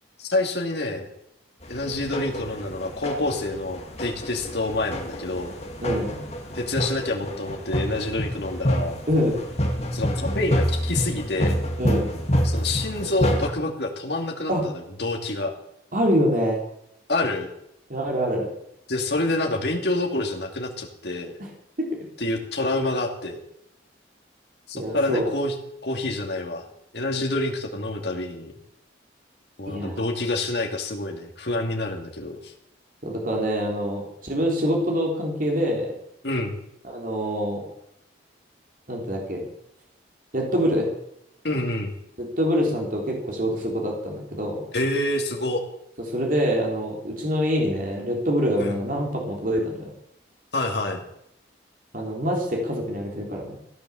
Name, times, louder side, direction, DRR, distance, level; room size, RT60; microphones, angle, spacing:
voice 1, 0.2-1.1 1.7-5.5 6.5-8.9 9.9-11.6 12.4-15.5 17.1-17.5 18.9-21.3 22.2-23.4 24.7-25.5 25.8-26.6 26.9-28.5 29.6-32.5 36.2-36.6 41.4-41.9 44.7-45.6 48.6-48.8 50.5-51.0, left 2 dB, 65° left, 2 dB, 2.5 m, -27 dB
sound 1, 1.6-13.5, equal, 35° left, 2.3 m, -28 dB
voice 2, 5.8-6.2 9.1-9.4 11.8-12.1 14.5-14.6 15.9-16.6 17.9-18.5 21.4-21.5 21.8-21.9 24.7-25.3 29.7-30.1 33.0-35.9 36.8-37.6 38.9-39.5 40.3-40.9 42.2-44.6 46.1-49.9 51.9-53.6, equal, 45° right, 0 dB, 3.4 m, -25 dB
15.5 x 10.5 x 7.1 m, 0.78 s
head